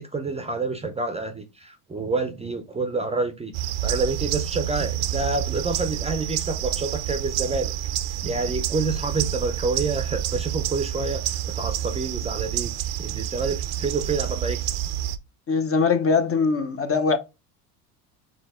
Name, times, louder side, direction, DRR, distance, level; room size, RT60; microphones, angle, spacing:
voice 1, 0.0-7.7 8.2-12.7 13.0-14.7, right 3 dB, 15° right, 0.6 m, -28 dB
sound 1, 3.5-15.2, right 12 dB, 75° right, 0.7 m, -28 dB
voice 2, 15.5-17.2, left 5 dB, 30° left, 0.8 m, -21 dB
5.1 x 2.9 x 3.5 m
supercardioid pair, 95°, 46 cm